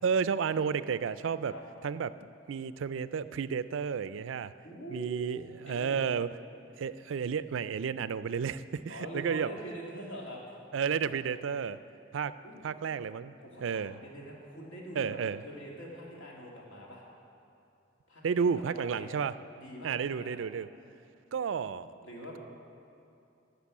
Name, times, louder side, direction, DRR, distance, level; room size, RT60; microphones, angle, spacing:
voice 1, 0.0-1.5 1.8-2.1 2.5-4.5 4.9-6.3 6.8-9.5 10.7-11.8 12.1-12.4 12.6-13.3 13.6-14.0 15.0-15.4 18.2-19.3 19.8-20.7 21.3-21.9, right 6 dB, 85° right, 15 dB, 0.4 m, -31 dB
voice 2, 4.6-5.3 5.7-6.1 8.9-10.4 10.9-11.2 12.4-12.6 13.4-17.0 18.1-18.2 18.6-19.2 19.6-20.4 22.0-22.4, right 1 dB, 90° left, -2 dB, 2.6 m, -44 dB
11.5 x 6.8 x 8.3 m, 2.7 s
head